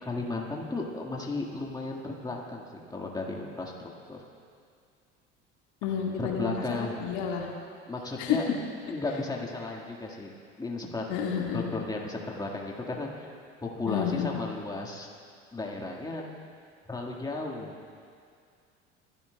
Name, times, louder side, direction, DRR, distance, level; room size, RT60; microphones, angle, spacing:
voice 1, 0.0-4.2 6.2-7.1 7.9-8.4 8.9-10.3 10.6-11.1 11.5-13.3 13.6-15.1 15.5-16.2 16.9-17.7, left 2 dB, 10° left, -1 dB, 1.8 m, -34 dB
voice 2, 5.8-7.5 8.2-8.4 11.1-11.6 13.9-14.3, left 8 dB, 60° left, -1 dB, 1.9 m, -30 dB
25.5 x 12.5 x 2.3 m, 2.2 s
figure-of-eight pair, 65°, 36 cm